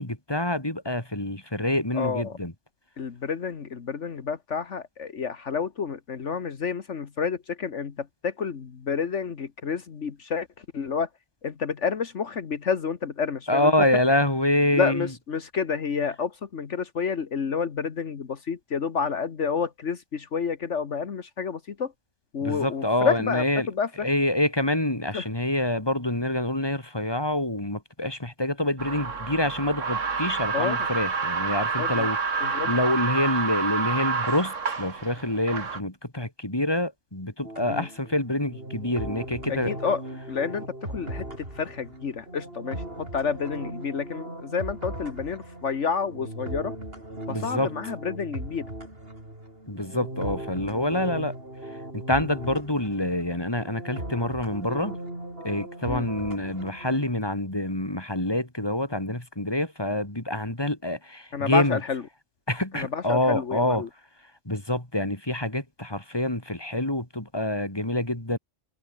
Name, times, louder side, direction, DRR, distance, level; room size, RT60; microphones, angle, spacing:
voice 1, 0.0-2.5 13.5-15.1 22.4-23.7 24.0-39.7 47.3-47.7 49.7-51.3 51.9-55.0 55.4-61.8 62.5-63.8 64.5-68.4, left 1 dB, 20° left, 4.0 m, -26 dB
voice 2, 1.9-2.4 3.0-11.1 11.4-13.7 14.8-21.9 22.3-24.1 25.1-25.3 30.5-30.8 31.8-32.1 32.4-32.7 37.7-37.9 39.5-40.0 40.3-46.7 47.3-48.7 55.9-56.1 61.3-62.0 62.7-63.9, left 6 dB, 70° left, 1.7 m, -29 dB
sound 1, 28.8-35.8, right 5 dB, 80° right, 2.3 m, -28 dB
sound 2, 37.4-57.1, right 1 dB, 50° right, 7.8 m, -38 dB
omnidirectional pair, 1.3 m